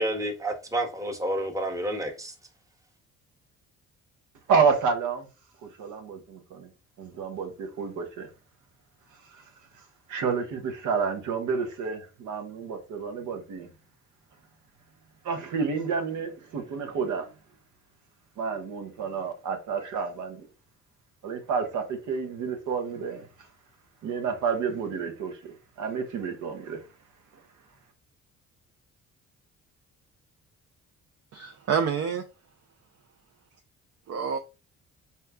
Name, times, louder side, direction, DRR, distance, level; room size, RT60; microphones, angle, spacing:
voice 1, 0.0-2.3, right 1 dB, 10° right, 0.9 m, -29 dB
voice 2, 4.5-5.2 5.6-6.7 7.0-8.3 10.1-13.7 15.2-17.3 18.4-20.4 21.2-23.3 24.0-26.8, right 5 dB, 80° right, 1.0 m, -29 dB
voice 3, 31.3-32.2 34.1-34.4, right 7 dB, 55° right, 0.6 m, -27 dB
4.4 x 2.3 x 3.4 m
cardioid pair, 90°, 30 cm